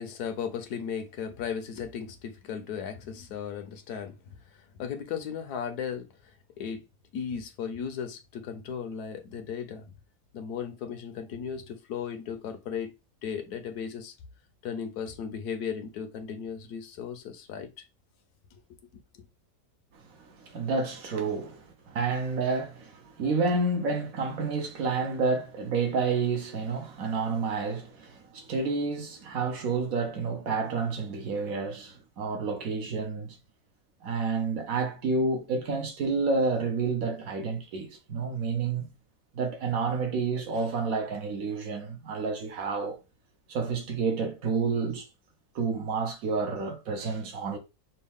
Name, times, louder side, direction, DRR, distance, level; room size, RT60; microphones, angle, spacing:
voice 1, 0.0-4.2 4.8-6.1 6.6-6.8 7.1-9.8 10.3-12.9 13.2-14.1 14.6-17.8 19.1-19.3, left 7 dB, 75° left, 1.2 m, -36 dB
voice 2, 19.9-33.4 34.0-38.9 39.3-43.0 43.5-45.1 45.5-47.6, right 4 dB, 65° right, 1.2 m, -29 dB
5.4 x 2.3 x 3.5 m
omnidirectional pair, 1.7 m